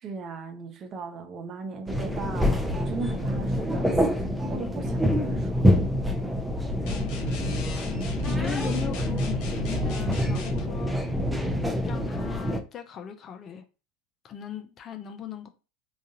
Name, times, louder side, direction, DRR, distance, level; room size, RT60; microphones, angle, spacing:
voice 1, 0.0-5.7, right 4 dB, 35° right, 0.8 m, -38 dB
sound 1, 1.9-12.6, equal, 5° right, 0.6 m, -26 dB
sound 2, 6.9-10.7, left 3 dB, 55° left, 0.9 m, -36 dB
voice 2, 8.0-11.0 11.8-13.6 14.2-15.5, left 9 dB, 35° left, 0.5 m, -38 dB
3.8 x 2.4 x 2.7 m
figure-of-eight pair, 80°, 0 cm